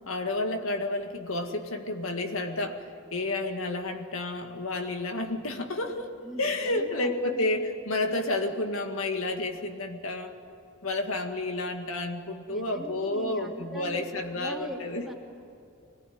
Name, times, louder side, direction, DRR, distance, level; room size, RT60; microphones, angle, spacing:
voice 1, 0.1-6.1 6.4-10.3 10.8-15.0, left 2 dB, 80° left, 5 dB, 1.9 m, -30 dB
voice 2, 6.2-7.4 12.5-14.0 14.3-15.1, equal, ahead, -2 dB, 2.8 m, -41 dB
25.0 x 19.5 x 9.4 m, 2.6 s
head